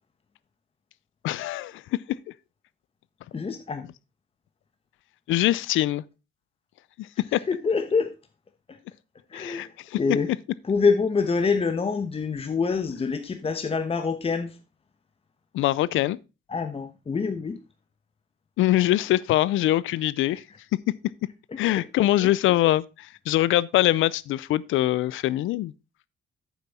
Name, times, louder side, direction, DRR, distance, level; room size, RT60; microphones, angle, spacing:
voice 1, 1.2-1.8 5.3-6.0 7.0-7.4 9.3-10.2 15.5-16.2 18.6-20.4 20.9-21.0 21.6-25.7, left 15 dB, 80° left, 0.5 m, -23 dB
voice 2, 3.3-3.9 7.5-8.1 8.7-8.8 9.3-9.7 10.0-10.3 10.7-14.6 16.5-17.6 20.3-20.4 22.2-22.3, left 5 dB, 30° left, 1.1 m, -26 dB
8.9 x 7.2 x 4.2 m
cardioid pair, 90°, 20 cm